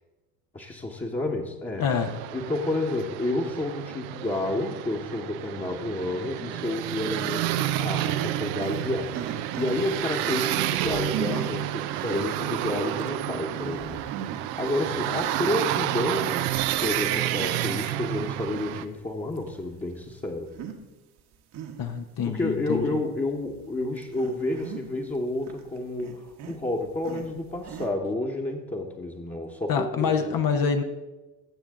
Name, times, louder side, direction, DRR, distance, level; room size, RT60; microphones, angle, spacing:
voice 1, 0.5-1.9 2.3-20.5 22.2-30.4, left 2 dB, 15° left, -2 dB, 1.3 m, -30 dB
voice 2, 1.8-2.2 21.8-23.0 29.7-30.8, left 6 dB, 45° left, 5 dB, 1.0 m, -26 dB
sound 1, 1.9-18.8, right 13 dB, 75° right, 0.7 m, -30 dB
sound 2, 8.6-10.0 10.8-11.7 12.4-12.5 13.0-13.1 13.5-14.5 15.0-15.2 16.2-16.9 17.4-17.5 18.2-19.0 19.4-19.5 20.5-20.8 21.2-22.1 22.7-22.8 23.4-23.6 24.0-25.1 25.4-27.9, right 7 dB, 55° right, 1.5 m, -38 dB
16.0 x 7.1 x 3.8 m, 1.1 s
hypercardioid pair, 70°, 47 cm